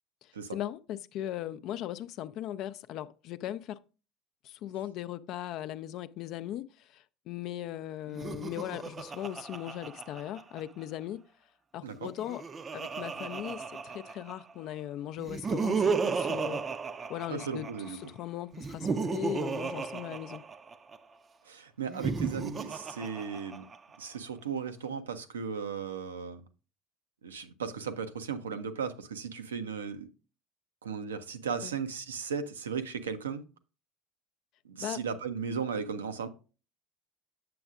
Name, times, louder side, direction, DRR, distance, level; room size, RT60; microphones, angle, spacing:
voice 1, 0.5-3.8 4.4-11.2 11.7-12.4 12.7-16.6 17.1-17.7 18.0-20.4 31.6-31.7 34.8-35.0, left 12 dB, 55° left, 0.4 m, -38 dB
Laughter, 8.1-10.8 11.9-14.5 15.2-17.9 18.5-21.0 21.8-23.9, right 5 dB, 30° right, 0.5 m, -34 dB
voice 2, 17.3-18.0 21.5-23.6 24.0-26.4 27.2-30.1 30.8-33.4 34.6-36.3, right 6 dB, 85° right, 0.5 m, -36 dB
7.7 x 6.9 x 2.4 m
hypercardioid pair, 65°, 0 cm